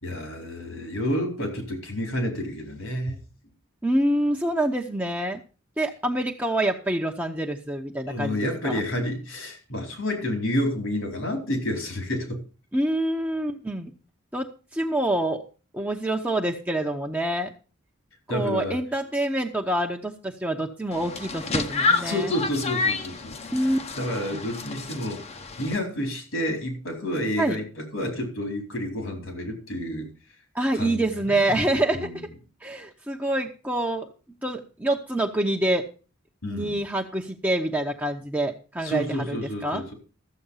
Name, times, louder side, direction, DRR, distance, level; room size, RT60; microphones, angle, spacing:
voice 1, 0.0-3.2 8.1-12.4 18.3-18.8 22.0-23.3 23.9-25.2 25.6-30.1 30.7-32.2 36.4-36.8 38.8-39.9, left 1 dB, 80° left, 4.4 m, -29 dB
voice 2, 3.8-5.4 5.8-8.8 12.7-13.9 14.3-15.4 15.7-17.5 18.3-22.3 23.5-23.8 24.3-24.4 27.4-27.6 30.5-32.3 32.6-34.1 34.4-35.9 36.4-39.8, right 1 dB, 10° right, 0.8 m, -26 dB
sound 1, 20.9-25.8, left 4 dB, 30° left, 0.9 m, -29 dB
14.0 x 7.8 x 5.6 m
head